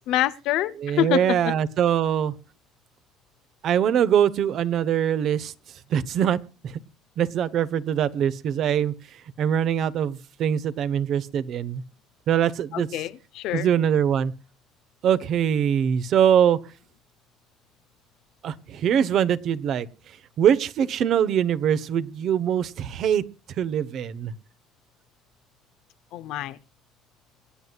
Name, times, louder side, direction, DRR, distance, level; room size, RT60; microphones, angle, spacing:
voice 1, 0.0-1.4 12.7-13.7 26.1-26.6, left 13 dB, 75° left, 0.9 m, -26 dB
voice 2, 0.8-2.3 3.6-5.5 5.9-6.4 6.6-6.8 7.2-8.9 9.4-11.8 12.3-13.0 13.5-14.3 15.0-16.6 18.4-19.9 20.4-23.2 23.6-24.3, right 9 dB, 60° right, 1.2 m, -23 dB
26.0 x 9.6 x 2.4 m
supercardioid pair, 95°, 0 cm